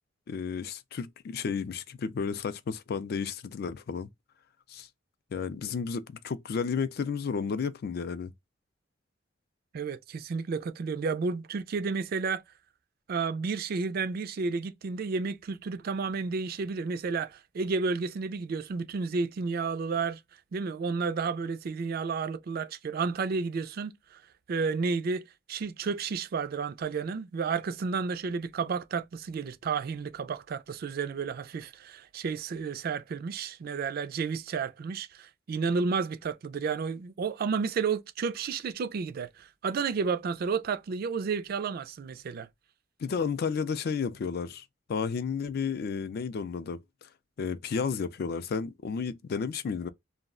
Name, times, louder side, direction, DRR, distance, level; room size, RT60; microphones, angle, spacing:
voice 1, 0.3-4.1 4.7-4.9 5.3-8.3 43.0-47.1 47.4-49.9, left 5 dB, 55° left, 0.3 m, -32 dB
voice 2, 9.7-12.4 13.1-20.2 20.5-24.2 24.5-42.5, right 5 dB, 55° right, 0.3 m, -31 dB
2.3 x 2.1 x 3.5 m
head